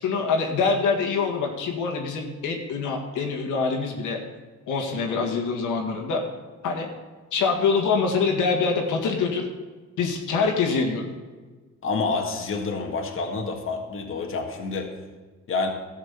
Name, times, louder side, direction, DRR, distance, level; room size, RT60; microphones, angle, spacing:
voice 1, 0.0-4.2 4.7-6.2 6.6-6.9 7.3-9.5 10.0-11.1, left 4 dB, 85° left, 1 dB, 1.9 m, -25 dB
voice 2, 11.8-14.9 15.5-15.7, left 4 dB, 45° left, 2 dB, 1.7 m, -28 dB
13.0 x 6.0 x 7.2 m, 1.4 s
cardioid pair, 90°, 30 cm